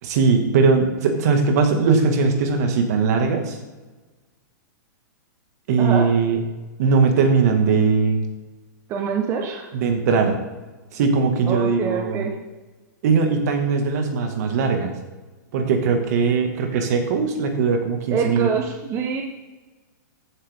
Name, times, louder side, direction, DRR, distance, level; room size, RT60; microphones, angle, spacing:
voice 1, 0.0-3.6 5.7-6.4 6.8-8.2 9.7-10.4 10.9-12.2 13.0-14.9 15.5-18.5, right 5 dB, 55° right, 4 dB, 2.1 m, -20 dB
voice 2, 8.9-9.7 11.5-12.3 18.1-19.2, right 6 dB, 25° right, 1 dB, 1.2 m, -25 dB
15.0 x 8.1 x 3.7 m, 1.2 s
hypercardioid pair, 145°, 10 cm